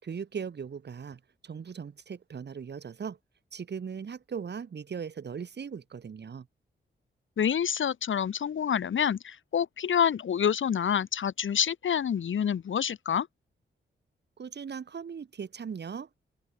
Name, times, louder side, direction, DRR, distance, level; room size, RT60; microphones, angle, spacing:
voice 1, 0.0-3.2 3.5-6.5 14.4-16.2, right 6 dB, 60° right, 5.0 m, -39 dB
voice 2, 7.4-13.3, left 8 dB, 75° left, 3.4 m, -27 dB
open air
wide cardioid pair, 120°, 20 cm